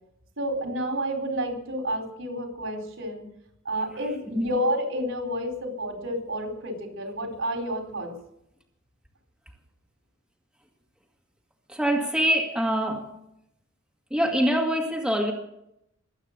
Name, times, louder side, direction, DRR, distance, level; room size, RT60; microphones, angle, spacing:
voice 1, 0.4-3.3 3.6-8.1, equal, 70° right, 3 dB, 4.3 m, -30 dB
voice 2, 11.7-13.1 14.1-15.3, equal, 5° right, 0 dB, 1.9 m, -24 dB
22.0 x 9.0 x 6.7 m, 0.80 s
head